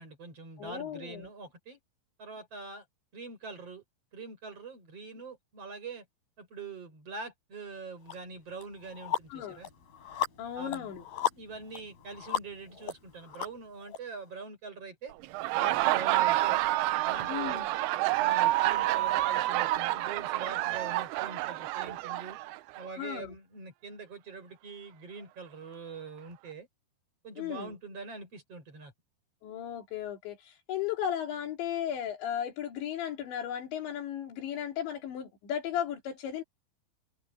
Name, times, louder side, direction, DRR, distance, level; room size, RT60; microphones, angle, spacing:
voice 1, 0.0-1.8 2.2-2.8 3.1-3.8 4.1-6.1 6.4-9.7 10.5-11.0 11.4-15.1 15.5-16.6 17.0-17.7 18.2-22.4 22.8-26.7 27.2-28.9, right 4 dB, 30° right, 6.4 m, -44 dB
voice 2, 0.6-1.3 9.3-9.6 10.4-11.1 17.3-17.7 23.0-23.4 27.4-27.7 29.4-36.4, left 10 dB, 75° left, 5.2 m, -35 dB
sound 1, 8.1-8.2 8.6-14.0, left 11 dB, 50° left, 7.2 m, -36 dB
Laughter, 15.2-22.9, right 16 dB, 80° right, 2.4 m, -28 dB
omnidirectional pair, 5.3 m